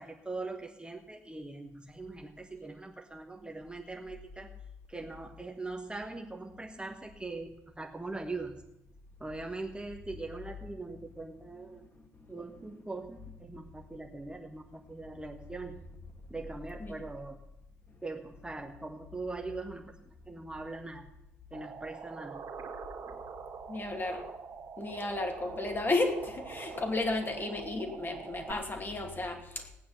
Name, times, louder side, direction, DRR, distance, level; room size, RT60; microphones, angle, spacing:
voice 1, 0.0-4.5 4.9-8.6 9.2-11.9 12.3-15.8 16.3-17.4 18.0-21.1 21.5-22.4, right 3 dB, 10° right, 2 dB, 1.4 m, -41 dB
voice 2, 11.9-12.3 16.8-16.9 23.7-24.3 24.8-29.7, left 2 dB, 25° left, 3 dB, 2.6 m, -33 dB
sound 1, 21.5-28.5, right 6 dB, 40° right, 2.7 m, -44 dB
17.5 x 9.4 x 5.7 m, 0.84 s
figure-of-eight pair, 45°, 8 cm